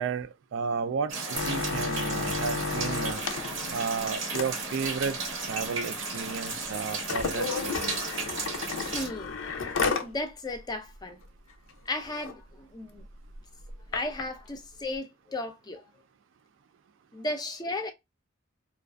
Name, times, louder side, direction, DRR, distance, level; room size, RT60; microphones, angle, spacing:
voice 1, 0.0-3.2 3.7-5.2 5.4-8.0, right 5 dB, 70° right, 0.3 m, -33 dB
sound 1, 1.1-9.1, right 3 dB, 90° right, 1.0 m, -34 dB
sound 2, 1.3-10.1 10.5-10.6 10.9-11.2 11.7-11.8 12.0-12.3 13.0-14.2 15.0-15.1, left 4 dB, 85° left, 0.5 m, -33 dB
voice 2, 8.8-9.3 10.0-11.2 11.9-13.0 13.9-15.8 17.1-17.9, left 2 dB, 20° left, 0.5 m, -35 dB
2.4 x 2.3 x 2.2 m
head